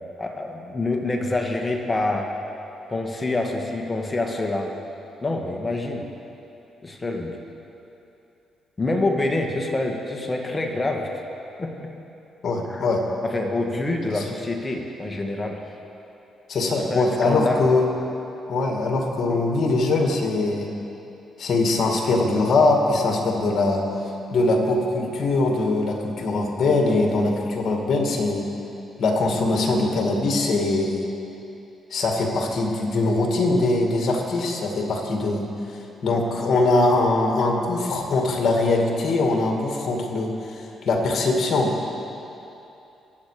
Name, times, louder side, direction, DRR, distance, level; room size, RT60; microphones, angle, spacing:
voice 1, 0.2-2.3 2.9-4.7 5.2-6.1 6.8-7.4 8.8-11.1 11.6-11.9 12.6-12.8 13.2-15.6 16.9-17.6, left 2 dB, 25° left, 2 dB, 1.8 m, -26 dB
voice 2, 12.4-13.0 14.1-14.2 16.5-17.9 18.5-20.7 21.4-23.9 24.3-28.5 29.0-31.0 31.9-41.7, left 2 dB, 60° left, 1 dB, 2.5 m, -22 dB
23.5 x 8.5 x 5.1 m, 2.8 s
cardioid pair, 75°, 0 cm